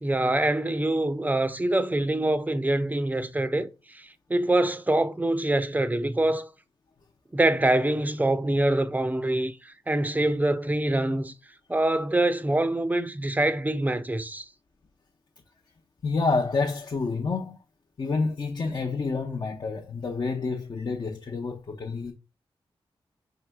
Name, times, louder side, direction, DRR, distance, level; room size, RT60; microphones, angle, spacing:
voice 1, 0.0-6.5 7.3-11.3 11.7-14.5, right 1 dB, 15° right, 0.5 m, -25 dB
voice 2, 16.0-17.6 18.0-22.1, left 4 dB, 50° left, 0.6 m, -28 dB
4.6 x 3.6 x 2.2 m
cardioid pair, 55°, 10 cm